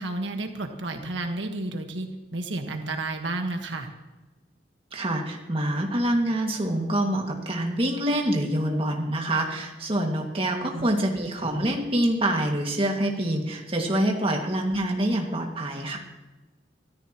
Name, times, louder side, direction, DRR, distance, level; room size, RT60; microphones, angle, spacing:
voice 1, 0.0-2.1 2.3-3.9 10.7-10.9, right 2 dB, 80° right, 4 dB, 1.5 m, -31 dB
voice 2, 4.9-16.0, right 1 dB, 30° right, 1 dB, 2.0 m, -26 dB
23.5 x 14.0 x 3.0 m, 1.1 s
head